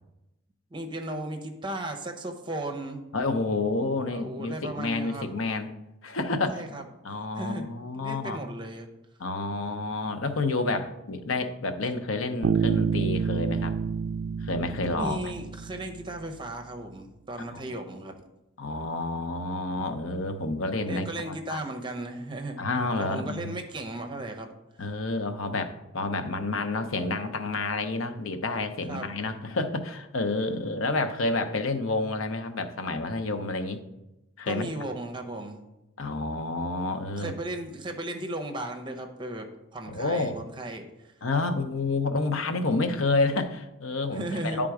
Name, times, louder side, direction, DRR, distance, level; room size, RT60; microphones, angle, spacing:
voice 1, 0.7-3.0 4.1-5.3 6.5-6.8 7.3-8.9 14.9-18.1 20.8-22.6 23.0-24.5 24.8-24.9 28.9-29.1 34.5-35.6 37.2-39.5 39.7-40.8 44.0-44.6, right 1 dB, 25° right, 4 dB, 0.8 m, -36 dB
voice 2, 3.1-5.7 6.0-6.8 7.0-8.4 9.2-13.7 14.4-15.2 18.6-21.6 22.6-23.5 24.8-33.8 34.4-34.7 36.0-37.3 39.9-40.4 41.2-44.7, left 3 dB, 85° left, 8 dB, 0.7 m, -29 dB
Bass guitar, 12.4-16.2, right 6 dB, 70° right, 0.3 m, -28 dB
10.5 x 3.7 x 4.8 m, 0.94 s
head